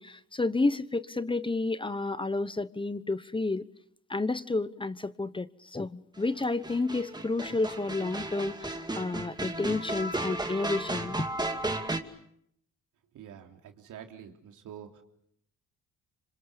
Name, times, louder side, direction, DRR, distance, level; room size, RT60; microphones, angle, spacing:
voice 1, 0.0-3.7 4.1-11.3, left 3 dB, 15° left, 1.0 m, -31 dB
sound 1, 6.4-12.0, right 2 dB, 15° right, 2.5 m, -34 dB
voice 2, 13.1-15.0, right 9 dB, 80° right, 3.5 m, -47 dB
27.5 x 26.0 x 7.0 m
cardioid pair, 90°, 30 cm